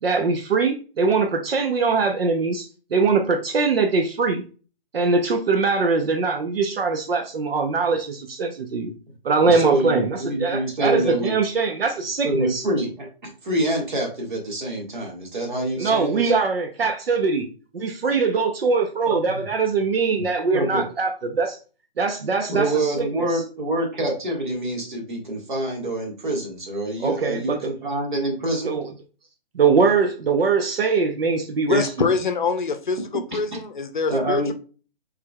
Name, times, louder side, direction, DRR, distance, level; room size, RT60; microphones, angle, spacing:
voice 1, 0.0-4.4 4.9-8.9 9.2-12.6 15.8-17.5 17.7-21.6 22.0-23.4 27.0-27.7 28.6-28.9 29.5-32.1, right 4 dB, 75° right, 0.7 m, -22 dB
voice 2, 9.4-11.3 12.2-16.3 20.5-20.9 22.5-28.7 33.3-33.4 34.1-34.5, right 1 dB, 55° right, 1.6 m, -26 dB
voice 3, 31.7-34.5, left 4 dB, 55° left, 0.6 m, -24 dB
4.7 x 3.4 x 2.3 m
hypercardioid pair, 180°, 30 cm